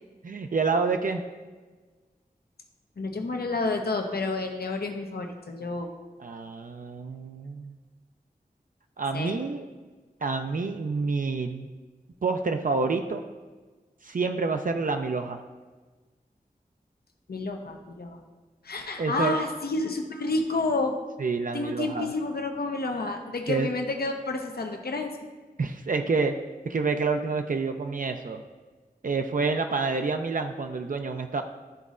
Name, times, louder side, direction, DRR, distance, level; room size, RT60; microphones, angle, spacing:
voice 1, 0.2-1.2 6.2-7.8 9.0-9.6 10.2-11.7 12.2-13.2 14.0-15.4 19.0-19.4 21.2-22.1 23.5-23.7 25.6-26.4 26.7-28.4 29.0-31.4, right 4 dB, 60° right, 5 dB, 0.4 m, -28 dB
voice 2, 3.0-5.9 9.1-9.4 17.3-18.2 18.6-20.9 21.5-25.1, left 2 dB, 75° left, 4 dB, 0.7 m, -30 dB
11.5 x 4.0 x 2.5 m, 1.3 s
wide cardioid pair, 50°, 16 cm